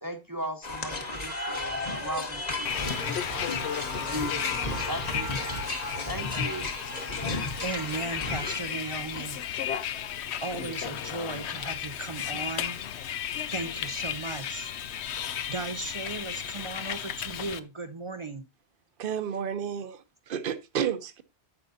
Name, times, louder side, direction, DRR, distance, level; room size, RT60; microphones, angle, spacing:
voice 1, 0.0-3.5 3.9-5.6 6.0-6.8, right 1 dB, 20° right, 0.9 m, -38 dB
sound 1, 0.6-8.6, left 2 dB, 40° left, 1.3 m, -33 dB
Bus, 2.6-17.6, left 9 dB, 80° left, 0.9 m, -34 dB
voice 2, 7.6-9.4 10.4-12.8 13.5-14.7 15.5-18.4, right 3 dB, 40° right, 0.5 m, -36 dB
voice 3, 19.0-21.2, right 8 dB, 55° right, 0.9 m, -31 dB
10.5 x 7.8 x 2.7 m
omnidirectional pair, 1.1 m